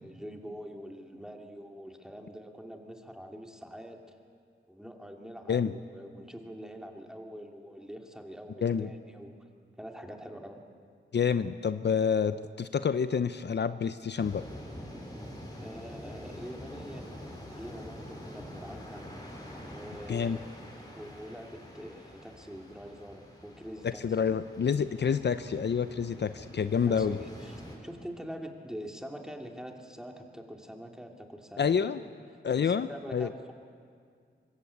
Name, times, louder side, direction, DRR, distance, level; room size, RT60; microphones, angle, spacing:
voice 1, 0.0-4.2 4.7-9.4 9.8-10.6 15.6-17.1 17.5-19.0 19.7-20.5 20.9-24.4 26.9-32.1 32.6-33.5, equal, 5° right, 2 dB, 2.5 m, -44 dB
voice 2, 11.1-14.4 20.1-20.4 24.0-27.2 31.6-32.0 32.4-33.3, left 6 dB, 60° left, 11 dB, 0.6 m, -28 dB
sound 1, 14.2-27.8, equal, 20° left, 5.1 m, -46 dB
25.0 x 21.5 x 8.6 m, 2.2 s
wide cardioid pair, 115°, 20 cm